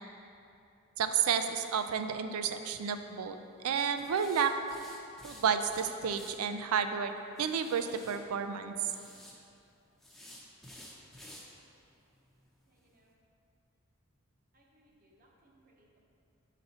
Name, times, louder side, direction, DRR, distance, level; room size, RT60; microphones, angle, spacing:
voice 1, 1.0-3.4 3.6-4.5 5.2-7.1 7.4-8.7, right 7 dB, 85° right, 8 dB, 0.4 m, -31 dB
sound 1, 2.6-2.9 4.0-6.4 7.4-8.2 8.8-9.3 10.0-11.5 11.8-11.9 12.4-12.5 12.8-12.9, left 1 dB, ahead, 0.6 m, -52 dB
voice 2, 12.7-13.1 14.5-16.0, right 1 dB, 40° right, -2 dB, 0.8 m, -67 dB
6.6 x 4.1 x 4.1 m, 2.6 s
head